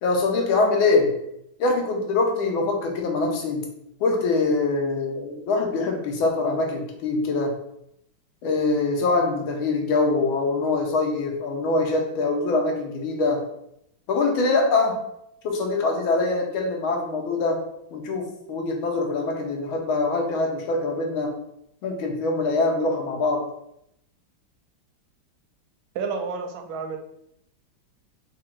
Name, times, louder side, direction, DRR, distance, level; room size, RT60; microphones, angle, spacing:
voice 1, 0.0-1.1 1.6-3.6 4.0-7.5 8.4-13.4 14.1-15.0 15.4-17.6 17.9-21.3 21.8-23.4, left 3 dB, 90° left, 2 dB, 1.7 m, -23 dB
voice 2, 25.9-27.0, right 5 dB, 85° right, 5 dB, 1.4 m, -30 dB
4.1 x 2.6 x 4.3 m, 0.78 s
omnidirectional pair, 2.2 m